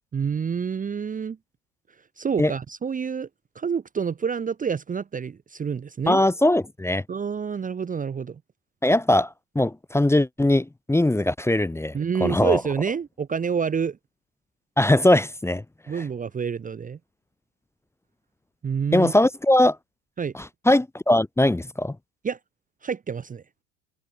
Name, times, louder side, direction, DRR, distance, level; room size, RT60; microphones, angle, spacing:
voice 1, 0.1-1.4 2.2-3.3 3.5-6.2 7.1-8.4 11.9-14.0 15.9-17.0 18.6-19.1 20.2-20.3 22.2-22.4 22.8-23.4, right 6 dB, 20° right, 1.1 m, -28 dB
voice 2, 6.1-7.0 8.8-9.3 9.5-11.9 12.2-12.6 14.8-15.6 18.9-19.8 20.3-21.9, left 1 dB, 5° left, 1.2 m, -20 dB
figure-of-eight pair, 70°, 46 cm